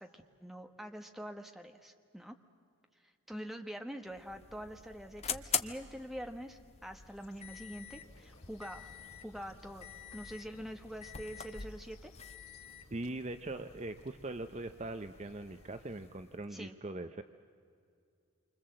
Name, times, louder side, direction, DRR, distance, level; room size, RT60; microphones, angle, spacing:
voice 1, 0.0-2.4 3.3-8.9 9.2-12.1 16.5-16.7, equal, ahead, 5 dB, 1.3 m, -45 dB
sound 1, 4.0-16.5, left 8 dB, 30° left, 0.8 m, -45 dB
sound 2, 7.0-16.1, left 2 dB, 85° left, 3.3 m, -64 dB
voice 2, 12.9-17.2, right 2 dB, 30° right, 9 dB, 0.6 m, -41 dB
28.0 x 25.0 x 7.7 m, 2.4 s
head